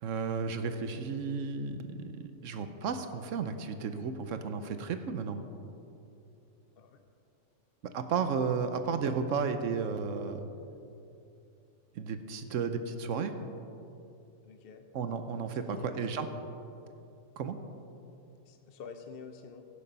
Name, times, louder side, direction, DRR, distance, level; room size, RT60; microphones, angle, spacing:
voice 1, 0.0-5.4 7.8-10.5 12.0-13.4 14.9-16.3 17.4-17.6, right 5 dB, 75° right, 9 dB, 1.0 m, -33 dB
voice 2, 14.4-14.8 15.7-16.3 18.5-19.6, left 6 dB, 55° left, 6 dB, 0.7 m, -48 dB
15.5 x 6.7 x 5.5 m, 2.7 s
omnidirectional pair, 1.3 m